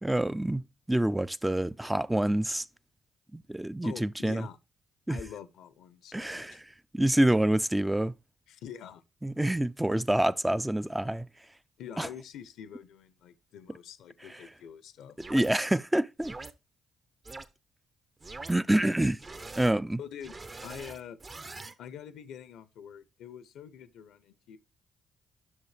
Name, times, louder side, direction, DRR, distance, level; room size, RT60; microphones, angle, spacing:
voice 1, 0.0-2.7 3.3-4.5 5.1-5.2 6.1-6.6 6.9-8.1 9.2-11.3 12.0-12.1 15.3-16.3 18.5-19.2 19.6-20.0, right 1 dB, 10° right, 0.4 m, -27 dB
voice 2, 3.8-4.6 5.1-6.6 8.5-9.0 11.8-15.2 20.0-20.4 20.6-21.2 21.8-24.6, left 8 dB, 70° left, 0.6 m, -45 dB
sound 1, 15.2-15.5 16.2-16.5 17.2-17.4 18.2-18.5 19.2-19.7 20.2-21.7, right 3 dB, 35° right, 0.8 m, -43 dB
11.0 x 6.2 x 3.3 m
hypercardioid pair, 45°, 0 cm